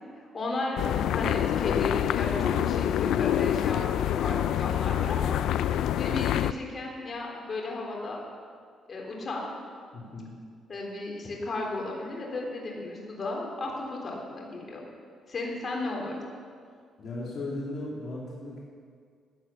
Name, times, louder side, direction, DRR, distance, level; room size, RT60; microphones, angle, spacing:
voice 1, 0.1-5.4 6.0-8.2 8.9-9.5 10.7-14.8 15.3-16.2, left 2 dB, 40° left, -1 dB, 3.7 m, -34 dB
sound 1, 0.8-6.5, left 11 dB, 80° left, 0.4 m, -26 dB
voice 2, 9.9-10.4 17.0-18.6, left 2 dB, 60° left, -5 dB, 3.0 m, -36 dB
15.5 x 9.2 x 7.3 m, 2.1 s
cardioid pair, 90°, 0 cm